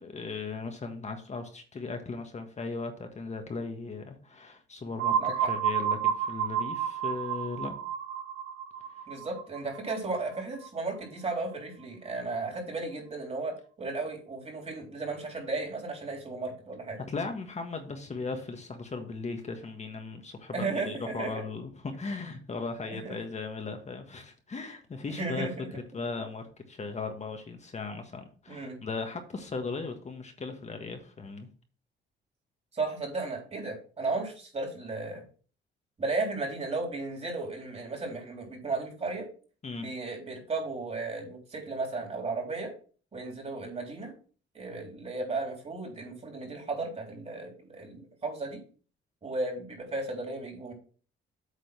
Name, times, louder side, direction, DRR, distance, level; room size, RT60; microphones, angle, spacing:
voice 1, 0.0-7.8 17.1-31.5 39.6-39.9, left 4 dB, 35° left, 5 dB, 1.4 m, -37 dB
sound 1, 5.0-10.7, right 8 dB, 70° right, 0.9 m, -31 dB
voice 2, 5.2-5.5 9.1-17.0 20.5-21.3 22.9-23.2 25.1-25.7 28.5-28.8 32.7-35.2 36.0-39.3 39.8-42.7 43.1-44.1 44.5-48.6 49.2-50.7, right 3 dB, 30° right, 1 dB, 3.6 m, -35 dB
8.4 x 3.7 x 6.0 m, 0.40 s
cardioid pair, 90°, 20 cm